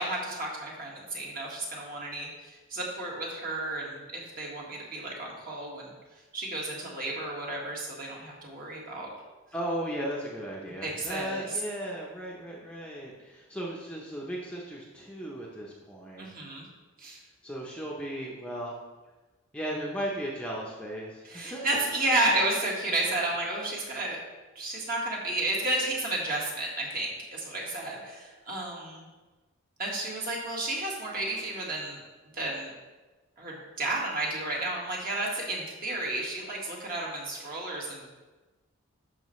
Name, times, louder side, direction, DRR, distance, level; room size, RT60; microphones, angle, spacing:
voice 1, 0.0-5.9 6.3-9.1 10.8-11.6 16.2-16.7 17.0-17.2 21.2-24.2 24.6-29.0 29.8-32.0 32.3-32.7 33.4-38.1, right 2 dB, 40° right, -3 dB, 1.7 m, -32 dB
voice 2, 9.5-16.3 17.4-18.8 19.5-21.8 22.3-22.4, right 1 dB, 5° left, -4 dB, 0.8 m, -36 dB
10.5 x 6.5 x 3.2 m, 1.2 s
head